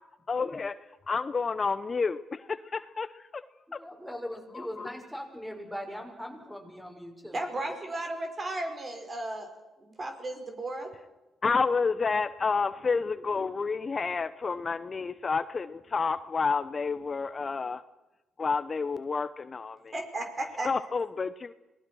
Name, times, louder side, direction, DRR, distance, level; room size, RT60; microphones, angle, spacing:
voice 1, 0.3-0.7 1.1-3.1 4.5-4.9 11.4-17.8 18.4-19.9 20.6-21.6, left 4 dB, 40° left, 13 dB, 0.8 m, -29 dB
voice 2, 3.8-8.0, equal, 5° right, 3 dB, 6.1 m, -41 dB
voice 3, 7.3-9.5 9.8-10.9 19.9-20.7, right 2 dB, 40° right, 4 dB, 5.4 m, -34 dB
26.5 x 19.5 x 6.4 m, 1.0 s
supercardioid pair, 60°, 0 cm